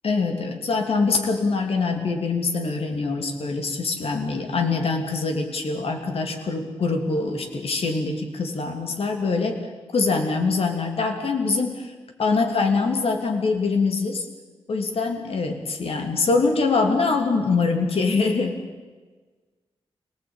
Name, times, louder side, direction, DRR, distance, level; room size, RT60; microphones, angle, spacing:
voice 1, 0.0-9.6 9.9-11.9 12.2-14.2 14.7-18.6, left 4 dB, 70° left, 4 dB, 3.3 m, -24 dB
28.0 x 19.0 x 9.2 m, 1.4 s
wide cardioid pair, 100°, 10 cm